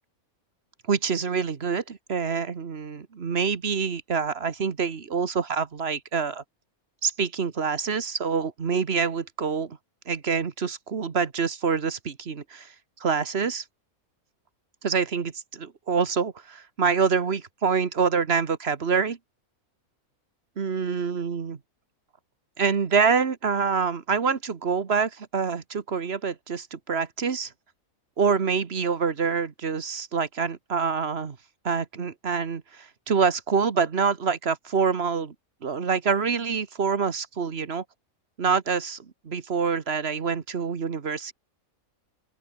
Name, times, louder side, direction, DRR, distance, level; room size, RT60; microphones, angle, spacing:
voice 1, 0.9-6.4 7.0-9.8 10.1-12.7 13.0-13.6 14.8-19.2 20.6-21.6 22.6-27.5 28.2-31.4 31.6-35.3 35.6-37.8 38.4-41.3, right 5 dB, 45° right, 1.5 m, -26 dB
open air
omnidirectional pair, 1.5 m